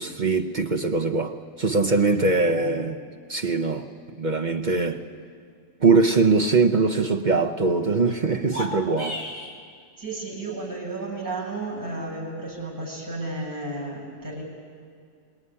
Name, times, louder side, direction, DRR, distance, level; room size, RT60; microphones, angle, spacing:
voice 1, 0.0-3.0 3.3-3.9 4.2-5.0 5.8-9.2, right 4 dB, 50° right, 3 dB, 0.5 m, -22 dB
voice 2, 2.4-2.9 4.6-4.9 10.0-14.4, right 2 dB, 10° right, -4 dB, 7.3 m, -33 dB
sound 1, 8.4-9.6, left 1 dB, 45° left, 3.2 m, -33 dB
25.5 x 20.0 x 9.9 m, 2.2 s
omnidirectional pair, 2.1 m